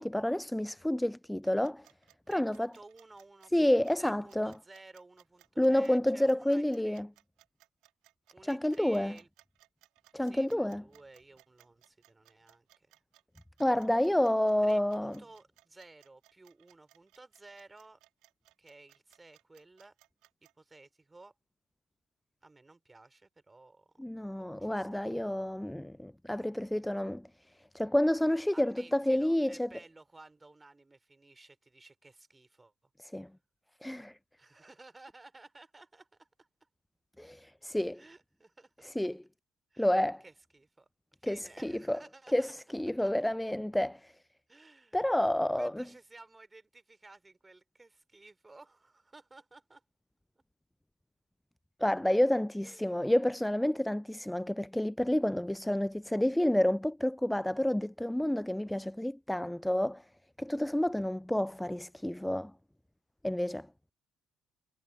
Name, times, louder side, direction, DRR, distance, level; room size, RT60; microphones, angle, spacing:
voice 1, 0.0-1.9 2.3-2.7 3.5-4.5 5.6-7.1 8.4-9.2 10.1-10.8 13.6-15.2 24.0-27.3 27.7-29.7 33.0-33.3 33.8-34.1 37.2-38.0 38.8-39.2 39.8-40.2 41.3-42.0 42.3-44.1 44.9-45.8 51.8-60.0 60.4-62.5 63.2-63.7, left 1 dB, 5° left, 0.4 m, -29 dB
sound 1, 1.4-20.5, right 18 dB, 60° right, 2.0 m, -64 dB
voice 2, 2.3-3.7 4.0-7.0 8.3-9.3 10.2-12.9 14.6-18.0 18.6-19.9 20.6-21.3 22.4-24.0 24.3-25.0 28.5-32.7 34.4-36.5 37.9-39.1 39.7-39.9 40.2-40.9 41.2-42.5 42.9-43.3 44.5-45.0 45.6-49.8 52.6-53.0, right 2 dB, 15° right, 4.7 m, -55 dB
figure-of-eight pair, 50°, 0 cm